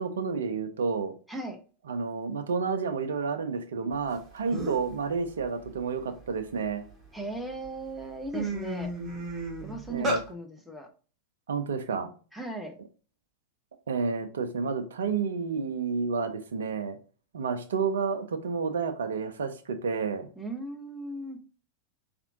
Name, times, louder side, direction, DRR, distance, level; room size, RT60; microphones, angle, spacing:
voice 1, 0.0-1.1 1.9-6.8 9.9-10.2 11.5-12.1 13.9-17.0 17.3-20.3, right 5 dB, 65° right, 0.5 m, -30 dB
voice 2, 1.3-1.6 7.1-8.9 9.6-10.9 12.3-12.7 20.4-21.4, right 2 dB, ahead, 0.6 m, -37 dB
sound 1, 4.2-4.3 4.5-4.9 5.4-6.9 7.5-7.7 8.0-10.2, right 1 dB, 20° right, 1.0 m, -33 dB
4.3 x 2.5 x 2.6 m
figure-of-eight pair, 90°, 0 cm